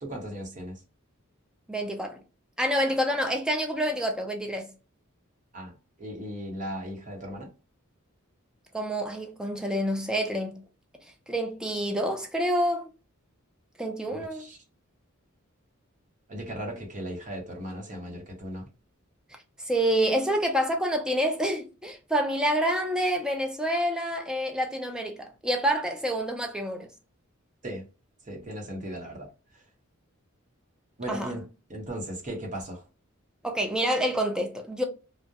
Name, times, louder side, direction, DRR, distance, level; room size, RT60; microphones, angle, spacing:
voice 1, 0.0-0.8 5.5-5.7 6.0-7.5 14.0-14.6 16.3-18.7 27.6-27.9 28.2-29.7 31.0-32.8, equal, 35° right, 0.8 m, -37 dB
voice 2, 1.7-2.2 2.6-4.7 8.7-10.6 11.3-12.9 13.8-14.5 19.6-26.9 31.1-31.3 33.4-34.8, equal, 5° right, 0.3 m, -27 dB
2.3 x 2.0 x 2.7 m
head